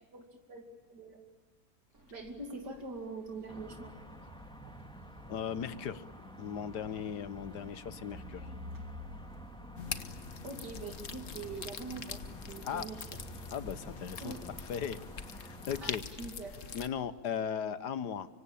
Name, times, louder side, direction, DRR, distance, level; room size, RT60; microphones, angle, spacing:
voice 1, 0.1-0.6 0.9-1.2 2.1-4.0 8.4-8.6 10.4-13.0 14.2-14.5 15.8-16.6, right 3 dB, 85° right, 4 dB, 3.1 m, -44 dB
sound 1, 1.9-9.9, left 1 dB, 60° right, 4.5 m, -52 dB
sound 2, 3.5-16.0, right 1 dB, 5° left, 2.1 m, -50 dB
voice 2, 5.3-6.0 6.4-8.5 12.7-12.9 13.5-14.3 14.7-15.0 15.3-16.0 16.7-18.3, left 8 dB, 75° left, 14 dB, 1.7 m, -37 dB
sound 3, 9.8-16.9, left 6 dB, 50° left, 1.5 m, -43 dB
25.0 x 25.0 x 8.6 m, 1.4 s
omnidirectional pair, 1.8 m